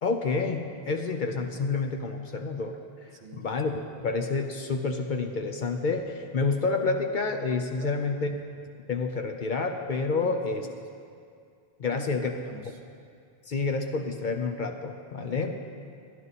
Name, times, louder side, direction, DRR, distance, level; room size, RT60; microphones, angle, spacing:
voice 1, 0.0-8.3 8.9-10.6 11.8-12.3 13.5-15.5, left 4 dB, 55° left, 4 dB, 0.7 m, -29 dB
voice 2, 3.1-3.4 7.8-8.3 10.2-10.8 11.8-12.8 15.2-15.5, right 4 dB, 55° right, 3 dB, 0.9 m, -46 dB
11.0 x 11.0 x 4.1 m, 2.3 s
omnidirectional pair, 1.1 m